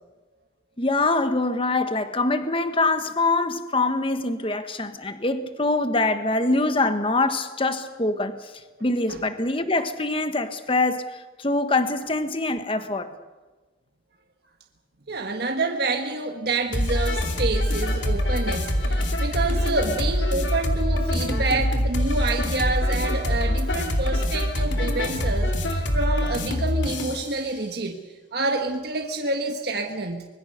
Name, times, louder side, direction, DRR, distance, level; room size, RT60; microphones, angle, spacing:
voice 1, 0.8-8.4 8.8-13.1, left 2 dB, 30° left, 1.4 m, -24 dB
voice 2, 15.1-28.0 28.3-30.3, right 3 dB, 60° right, 1.5 m, -28 dB
sound 1, 16.7-27.3, left 1 dB, 90° left, 2.8 m, -24 dB
24.5 x 21.5 x 6.7 m
head